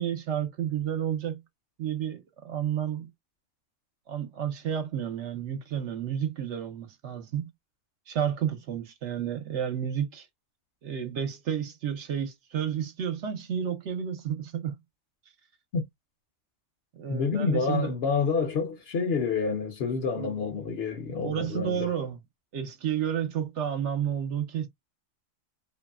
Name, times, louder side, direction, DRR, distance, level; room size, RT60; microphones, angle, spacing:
voice 1, 0.0-1.4 1.8-3.1 4.1-7.5 8.1-10.3 10.8-14.8 17.0-17.9 20.2-20.4 21.2-22.2 22.5-24.7, right 9 dB, 65° right, 0.9 m, -31 dB
voice 2, 17.1-21.9, left 5 dB, 55° left, 0.8 m, -28 dB
3.0 x 2.6 x 2.3 m
omnidirectional pair, 1.3 m